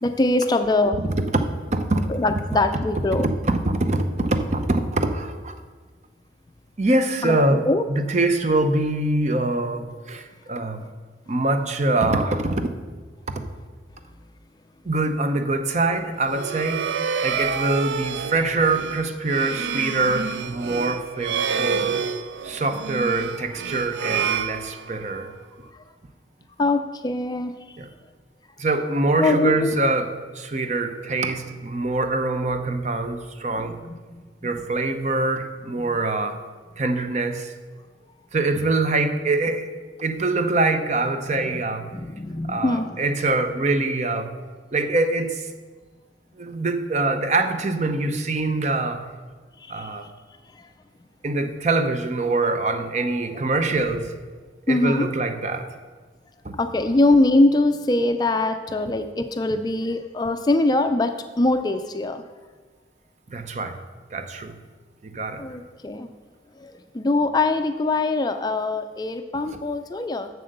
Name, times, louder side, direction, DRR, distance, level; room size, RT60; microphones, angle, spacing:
voice 1, 0.0-1.0 2.1-3.3 7.2-7.8 26.6-27.8 29.2-29.7 33.6-34.5 35.8-35.9 41.4-41.6 41.9-43.0 49.6-50.0 50.5-50.7 54.7-55.1 56.5-62.2 65.4-66.1 66.6-70.3, left 2 dB, 20° left, 8 dB, 0.4 m, -23 dB
voice 2, 1.0-2.1 3.2-5.5 6.8-10.8 11.3-12.7 13.3-13.4 14.8-16.9 17.2-21.9 22.4-25.3 27.8-27.9 28.6-33.8 34.4-36.4 36.8-37.5 38.3-39.7 40.0-41.9 42.5-44.3 44.7-45.5 46.4-49.0 49.7-50.1 51.2-54.1 54.7-55.7 56.4-56.5 63.3-63.8 64.1-64.5 65.0-65.4 69.5-69.6, right 2 dB, 40° right, 7 dB, 0.7 m, -24 dB
sound 1, 16.2-25.2, right 6 dB, 80° right, 0.4 m, -28 dB
7.7 x 6.8 x 6.5 m, 1.4 s
head